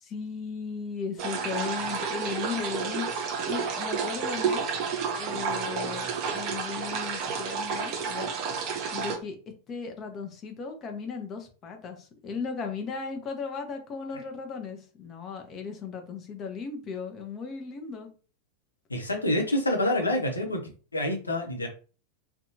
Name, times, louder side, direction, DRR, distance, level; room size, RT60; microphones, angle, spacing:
voice 1, 0.0-4.8 5.2-8.3 8.9-9.4 9.7-18.1, left 5 dB, 30° left, 5 dB, 0.6 m, -36 dB
sound 1, 1.2-9.2, right 6 dB, 40° right, 0.5 m, -31 dB
voice 2, 18.9-20.6 20.9-21.7, left 1 dB, 80° left, 2 dB, 0.6 m, -27 dB
2.6 x 2.2 x 2.7 m, 0.37 s
figure-of-eight pair, 90°, 0 cm